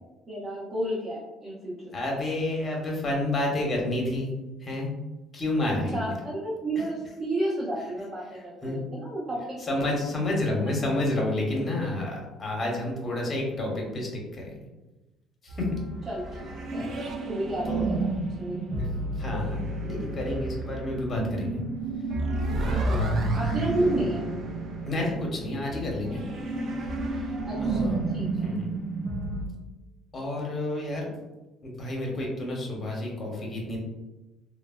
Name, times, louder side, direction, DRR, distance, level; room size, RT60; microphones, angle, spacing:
voice 1, 0.3-1.9 5.7-9.6 16.1-16.9 17.3-18.1 18.4-18.6 22.8-23.0 23.3-24.2 27.4-28.3, right 1 dB, 35° right, -9 dB, 0.8 m, -31 dB
voice 2, 1.9-4.3 4.6-4.9 5.3-6.1 8.6-8.8 9.7-14.6 15.4-15.7 16.8-16.9 17.7-17.8 18.8-18.9 19.2-21.6 22.6-23.2 24.8-26.2 27.6-27.9 28.4-28.7 30.1-31.1 31.6-33.8, left 1 dB, 30° left, -1 dB, 0.8 m, -30 dB
sound 1, 15.5-29.5, right 2 dB, 50° right, 0.4 m, -31 dB
3.3 x 2.0 x 2.3 m, 1.1 s
cardioid pair, 110°, 0 cm